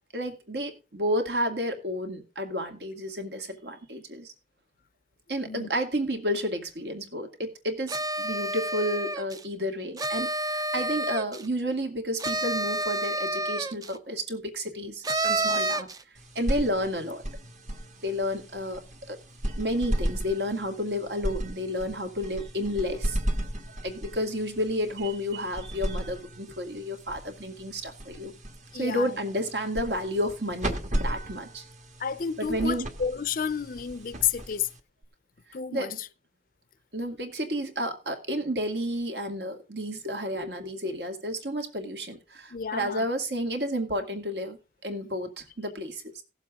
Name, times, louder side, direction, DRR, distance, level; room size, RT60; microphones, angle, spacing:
voice 1, 0.1-4.3 5.3-15.9 16.4-17.2 18.0-18.8 19.1-19.2 19.4-23.2 23.8-28.3 28.8-31.6 32.4-32.9 35.7-36.0 36.9-46.2, equal, 65° right, 2.2 m, -31 dB
sound 1, 7.9-9.4 10.0-11.5 12.2-13.9 15.0-16.0, right 2 dB, 20° right, 0.5 m, -29 dB
sound 2, 16.1-35.0, equal, 45° right, 1.7 m, -35 dB
voice 2, 28.7-29.2 32.0-34.7 35.5-36.1 42.5-43.1, left 7 dB, 50° left, 0.6 m, -31 dB
17.5 x 7.3 x 3.6 m
head